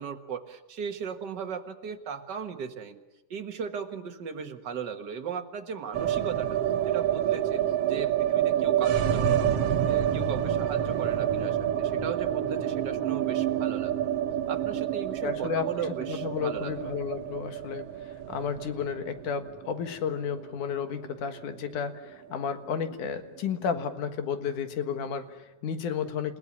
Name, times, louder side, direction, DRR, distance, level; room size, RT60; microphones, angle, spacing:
voice 1, 0.0-3.0 3.3-6.6 6.9-7.6 7.9-9.5 9.9-13.9 14.5-16.9, right 6 dB, 45° right, 5 dB, 1.5 m, -37 dB
sound 1, 5.9-22.0 22.3-22.4 22.7-23.4, right 10 dB, 60° right, 1.8 m, -28 dB
voice 2, 15.2-15.7 16.1-26.4, left 7 dB, 70° left, 9 dB, 3.0 m, -32 dB
29.5 x 16.5 x 9.8 m, 1.1 s
omnidirectional pair, 3.7 m